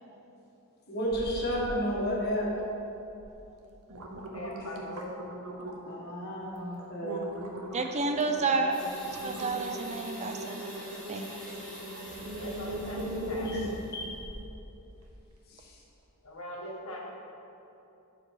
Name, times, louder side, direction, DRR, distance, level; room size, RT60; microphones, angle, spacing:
voice 1, 0.9-2.5 5.9-7.2 10.5-10.6 13.5-13.7 13.9-14.1 15.5-15.8, equal, 45° left, -3 dB, 1.7 m, -32 dB
sound 1, 1.1-1.7 2.1-2.6 3.2-3.3 3.7-6.0 6.4-6.6 7.0-14.5 15.0-15.1, right 1 dB, 75° right, 1.0 m, -39 dB
voice 2, 4.3-5.1 5.9-6.0 12.4-13.8 16.2-17.0, equal, 70° left, -2 dB, 1.6 m, -40 dB
voice 3, 7.7-8.8 9.2-10.6 11.1-11.4, right 3 dB, 30° right, 5 dB, 0.5 m, -30 dB
sound 2, 8.7-14.1, equal, 5° left, 2.1 m, -46 dB
12.0 x 4.7 x 4.9 m, 2.9 s
head